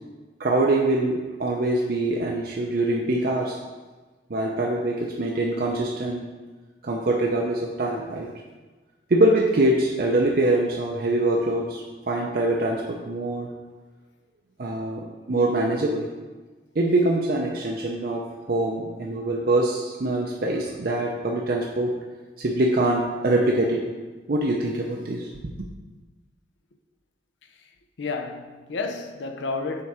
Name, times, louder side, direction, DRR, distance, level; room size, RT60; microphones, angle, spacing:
voice 1, 0.4-3.6 4.3-6.2 6.8-8.3 9.1-13.5 14.6-16.1 16.8-18.2 18.5-21.9 22.4-23.8 24.3-25.3, right 2 dB, 50° right, 0.6 m, -24 dB
voice 2, 28.0-29.8, left 3 dB, 75° left, 0.6 m, -31 dB
7.1 x 3.8 x 4.8 m
head